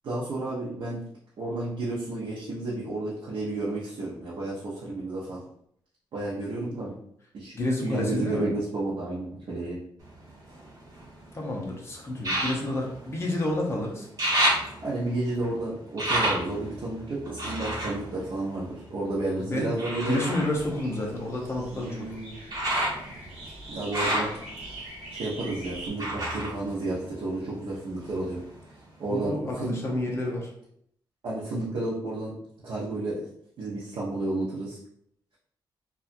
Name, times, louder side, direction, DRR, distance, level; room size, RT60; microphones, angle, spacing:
voice 1, 0.0-1.0 1.4-5.4 6.1-6.9 7.3-7.5 7.8-9.8 14.8-20.2 21.7-22.4 23.7-24.3 25.1-28.4 29.0-29.8 31.2-32.3 32.6-33.2 33.6-34.8, right 2 dB, 65° right, -7 dB, 0.7 m, -31 dB
voice 2, 7.6-8.5 11.3-14.1 19.4-19.7 20.0-22.1 29.1-30.5, left 1 dB, 30° left, -1 dB, 0.6 m, -29 dB
sound 1, 10.0-11.4 12.2-13.7 14.0-19.1 19.8-27.6 27.9-28.8 29.2-29.3, right 1 dB, 40° right, 1.1 m, -31 dB
sound 2, 20.5-25.9, right 1 dB, 10° right, 1.3 m, -43 dB
2.8 x 2.3 x 2.5 m, 0.69 s
wide cardioid pair, 170°, 9 cm